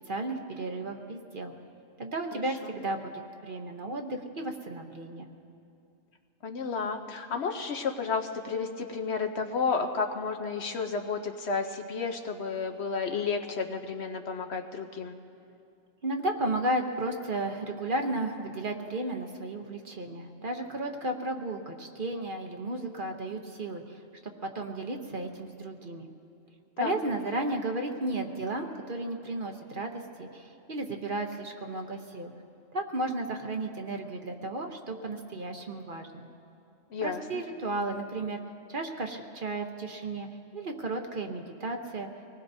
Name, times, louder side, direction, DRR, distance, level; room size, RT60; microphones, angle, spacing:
voice 1, 0.0-1.5 2.0-5.3 16.0-26.1 26.8-32.3 32.7-36.3 37.0-38.4 38.7-40.3 40.5-42.1, right 2 dB, 45° right, 4 dB, 1.0 m, -34 dB
voice 2, 6.4-15.1 26.8-27.0 36.9-37.4, left 5 dB, 60° left, 4 dB, 1.0 m, -32 dB
25.0 x 19.0 x 2.7 m, 2.6 s
omnidirectional pair, 1.3 m